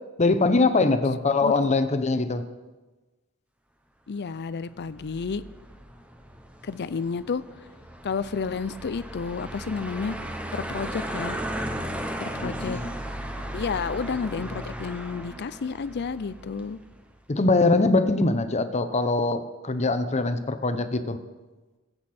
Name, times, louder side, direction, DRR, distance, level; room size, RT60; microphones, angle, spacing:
voice 1, 0.2-2.4 12.4-12.9 17.3-21.2, left 3 dB, 30° left, 10 dB, 0.8 m, -23 dB
voice 2, 4.1-5.4 6.6-7.4 8.0-10.1 10.5-11.4 12.2-12.8 13.5-16.8, left 5 dB, 50° left, 16 dB, 0.5 m, -31 dB
sound 1, 4.8-17.0, equal, 5° right, 0.9 m, -36 dB
21.5 x 8.0 x 4.4 m, 1.2 s
head